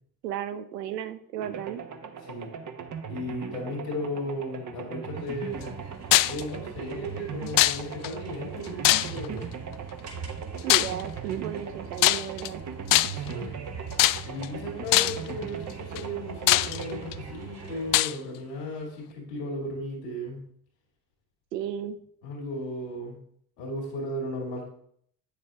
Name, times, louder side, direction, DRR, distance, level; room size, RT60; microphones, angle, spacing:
voice 1, 0.2-1.8 10.6-12.6 21.5-22.0, right 10 dB, 85° right, 12 dB, 0.8 m, -34 dB
sound 1, 1.4-18.3, right 6 dB, 40° right, 1.1 m, -40 dB
voice 2, 3.1-5.8 6.3-9.5 13.2-13.5 14.2-20.4 22.2-23.2 23.6-24.7, left 1 dB, 85° left, -2 dB, 2.5 m, -35 dB
sound 2, 5.5-18.0, right 6 dB, 60° right, 3.8 m, -42 dB
sound 3, 6.1-6.4 7.6-8.1 8.8-9.4 10.7-11.0 12.0-12.5 12.9-13.3 14.0-14.5 14.9-15.3 16.0-16.1 16.5-17.1 17.9-18.2, left 17 dB, 45° left, 0.4 m, -21 dB
9.2 x 6.8 x 3.5 m, 0.66 s
hypercardioid pair, 60°, 47 cm